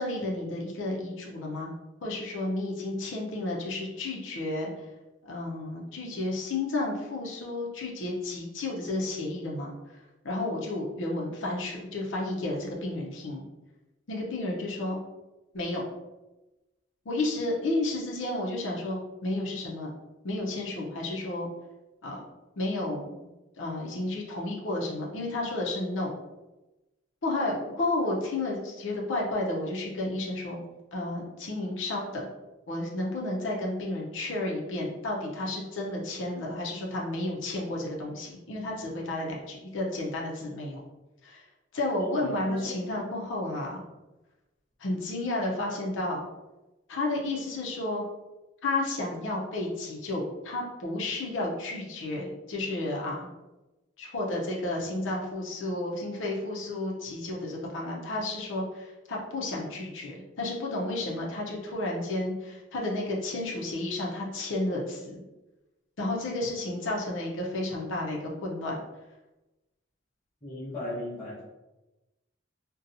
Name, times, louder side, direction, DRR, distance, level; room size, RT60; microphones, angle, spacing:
voice 1, 0.0-1.7 2.0-4.7 5.2-9.7 10.2-13.4 14.1-15.0 15.5-15.9 17.1-19.9 20.2-21.5 22.0-22.2 22.6-23.3 23.6-26.1 27.2-30.6 30.9-32.3 32.7-40.8 41.2-41.4 41.7-43.8 44.8-46.2 46.9-48.0 48.6-53.3 54.0-65.2 66.0-68.8, left 2 dB, 70° left, -2 dB, 0.5 m, -32 dB
voice 2, 42.0-42.6 70.4-71.4, left 1 dB, 20° left, -13 dB, 0.8 m, -36 dB
2.7 x 2.2 x 2.5 m, 1.1 s
head